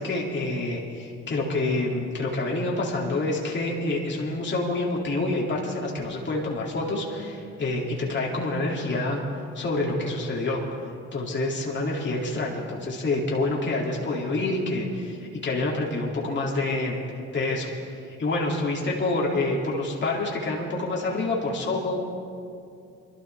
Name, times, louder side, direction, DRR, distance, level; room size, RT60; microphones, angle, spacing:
voice 1, 0.0-9.2 9.5-10.6 11.1-17.0 17.3-17.7 18.0-22.0, left 2 dB, 40° left, -3 dB, 2.5 m, -27 dB
24.0 x 12.5 x 3.4 m, 2.5 s
cardioid pair, 90°, 30 cm